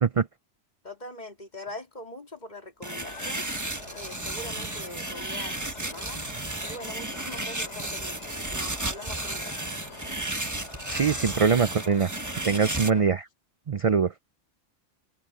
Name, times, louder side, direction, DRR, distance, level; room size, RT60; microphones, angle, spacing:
voice 1, 0.8-3.4 3.9-6.2 6.6-8.2 8.5-9.6, left 1 dB, 35° left, 3.5 m, -42 dB
sound 1, 2.8-13.0, left 3 dB, 70° left, 3.6 m, -43 dB
sound 2, 2.8-12.9, right 2 dB, 15° right, 1.2 m, -34 dB
voice 2, 10.9-12.1 12.4-13.3 13.7-14.1, right 6 dB, 50° right, 0.4 m, -23 dB
open air
omnidirectional pair, 1.2 m